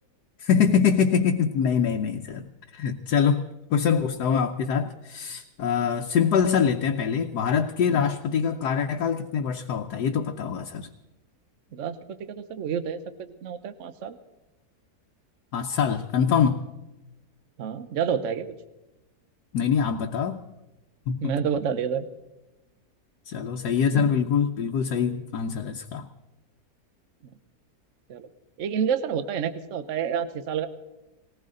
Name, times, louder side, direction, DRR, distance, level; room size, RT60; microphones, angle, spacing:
voice 1, 0.4-10.9 15.5-16.6 19.5-20.4 21.1-21.4 23.3-26.1, left 7 dB, 80° left, 3 dB, 1.3 m, -24 dB
voice 2, 11.7-14.2 17.6-18.5 21.2-22.1 23.9-24.1 28.1-28.3 28.6-30.7, right 7 dB, 55° right, 11 dB, 1.1 m, -29 dB
19.5 x 19.0 x 3.8 m, 1.0 s
omnidirectional pair, 1.7 m